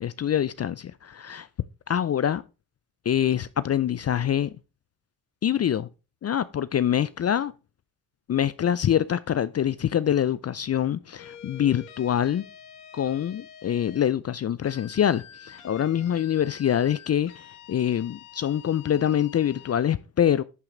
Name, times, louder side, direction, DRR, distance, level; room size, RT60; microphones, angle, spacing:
voice 1, 0.0-1.5 1.9-2.4 3.1-4.5 5.4-5.9 6.2-7.5 8.3-12.4 12.9-20.4, left 10 dB, 35° left, 0.5 m, -25 dB
sound 1, 11.2-14.1 14.6-19.8, left 8 dB, 80° left, 1.8 m, -47 dB
11.0 x 5.8 x 3.8 m
supercardioid pair, 65°, 48 cm